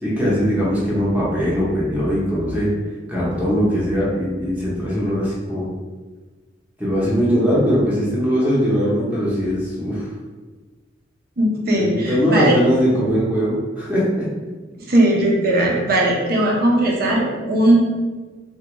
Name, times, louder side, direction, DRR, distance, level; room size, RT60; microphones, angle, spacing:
voice 1, 0.0-2.7 3.1-5.7 6.8-10.1 11.7-14.3, equal, 10° right, -8 dB, 0.7 m, -20 dB
voice 2, 11.4-12.6 14.9-17.8, right 1 dB, 50° right, -2 dB, 0.6 m, -18 dB
3.3 x 2.2 x 3.0 m, 1.3 s
head